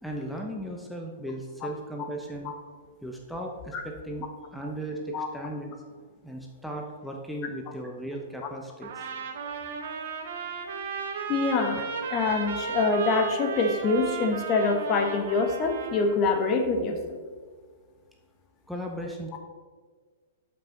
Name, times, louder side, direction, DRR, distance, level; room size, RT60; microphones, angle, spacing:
voice 1, 0.0-2.5 3.0-4.3 4.5-5.7 6.2-9.1 9.4-9.5 18.7-19.4, right 1 dB, ahead, 0 dB, 1.0 m, -36 dB
Trumpet, 8.8-16.2, right 5 dB, 65° right, 1.4 m, -35 dB
voice 2, 11.3-17.2, left 3 dB, 35° left, 5 dB, 1.2 m, -25 dB
11.5 x 5.8 x 3.9 m, 1.6 s
hypercardioid pair, 120°, 0 cm